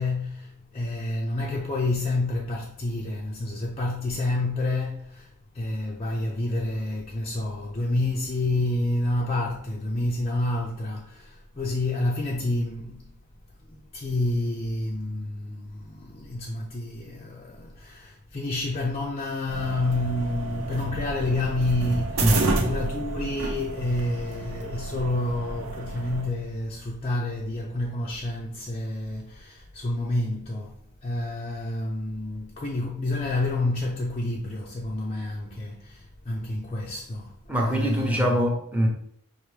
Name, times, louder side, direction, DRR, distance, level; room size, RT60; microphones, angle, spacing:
voice 1, 0.0-5.3 5.5-13.1 13.7-38.4, left 2 dB, 25° left, 0.5 m, -29 dB
sound 1, 19.5-26.2, right 2 dB, 65° right, 0.9 m, -30 dB
voice 2, 22.2-22.6 37.5-38.9, equal, 5° right, 0.8 m, -24 dB
5.7 x 2.6 x 3.2 m
head